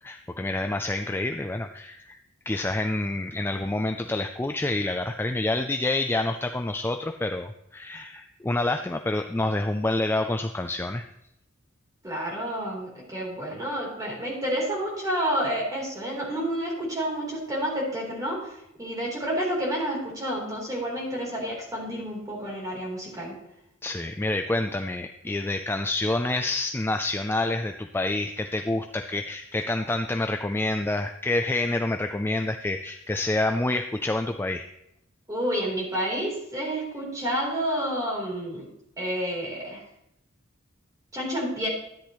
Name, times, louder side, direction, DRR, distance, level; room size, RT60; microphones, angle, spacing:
voice 1, 0.0-2.2 2.5-11.0 23.8-34.6, left 2 dB, 10° left, 6 dB, 0.3 m, -28 dB
voice 2, 12.0-23.4 35.3-38.6 39.0-39.8 41.1-41.7, equal, 15° right, -3 dB, 3.7 m, -29 dB
13.0 x 10.0 x 3.1 m, 0.81 s
head